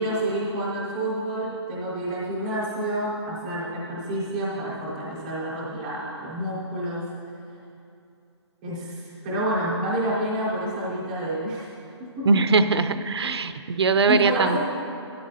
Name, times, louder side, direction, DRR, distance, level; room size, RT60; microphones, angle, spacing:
voice 1, 0.0-7.0 8.6-11.7 12.2-12.4 14.1-14.6, right 1 dB, 5° right, -10 dB, 0.4 m, -28 dB
voice 2, 12.3-14.6, right 4 dB, 60° right, 11 dB, 0.5 m, -21 dB
13.5 x 12.5 x 2.7 m, 2.6 s
hypercardioid pair, 180°, 15 cm